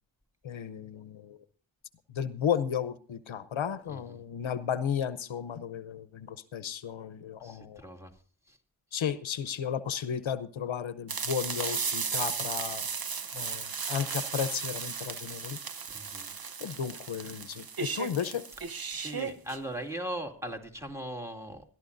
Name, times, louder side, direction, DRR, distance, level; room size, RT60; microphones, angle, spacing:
voice 1, 0.4-1.4 2.1-7.8 8.9-12.8 13.3-15.6 16.6-18.4, left 8 dB, 80° left, 13 dB, 0.9 m, -34 dB
voice 2, 3.9-4.2 7.4-8.1 8.5-8.6 15.9-16.3 18.9-21.6, right 1 dB, 5° right, 3 dB, 2.5 m, -39 dB
sound 1, 11.1-19.6, right 5 dB, 50° right, 1.0 m, -35 dB
21.0 x 12.5 x 2.6 m, 0.40 s
wide cardioid pair, 70°, 47 cm